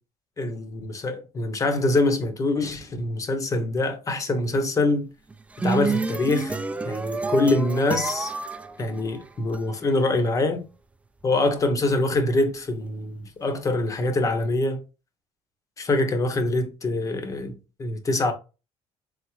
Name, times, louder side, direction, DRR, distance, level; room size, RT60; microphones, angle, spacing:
voice 1, 0.4-5.1 5.6-6.6 6.8-8.3 8.8-10.6 11.2-14.8 15.8-18.3, left 2 dB, 30° left, 0.8 m, -24 dB
sound 1, 5.3-9.6, right 3 dB, 10° right, 0.3 m, -29 dB
3.7 x 3.6 x 3.1 m
cardioid pair, 125°, 12 cm